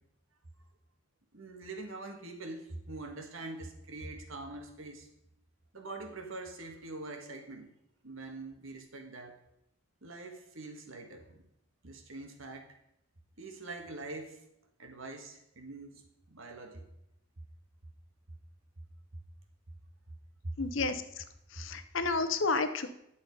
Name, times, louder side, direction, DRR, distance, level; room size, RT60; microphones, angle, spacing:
voice 1, 1.3-5.1 5.7-7.7 8.0-9.4 10.0-11.4 11.8-12.8 13.4-14.4 14.8-16.0 16.3-16.9, right 2 dB, 70° right, 4 dB, 1.6 m, -44 dB
voice 2, 20.6-21.2 21.5-22.9, left 3 dB, 60° left, 10 dB, 0.8 m, -31 dB
10.5 x 7.1 x 5.3 m, 0.80 s
head